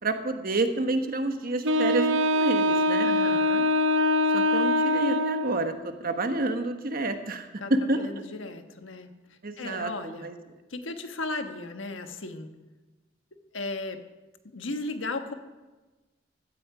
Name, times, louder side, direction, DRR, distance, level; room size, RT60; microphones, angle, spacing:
voice 1, 0.0-3.1 4.3-8.1 9.4-10.3, right 2 dB, 50° right, 7 dB, 1.2 m, -29 dB
Wind instrument woodwind instrument, 1.6-5.7, left 1 dB, 80° right, 0.9 m, -23 dB
voice 2, 3.0-3.7 7.6-9.1 9.6-10.3 10.7-12.5 13.5-14.0 14.5-15.3, left 2 dB, 90° left, 7 dB, 1.4 m, -35 dB
16.5 x 13.0 x 5.0 m, 1.2 s
head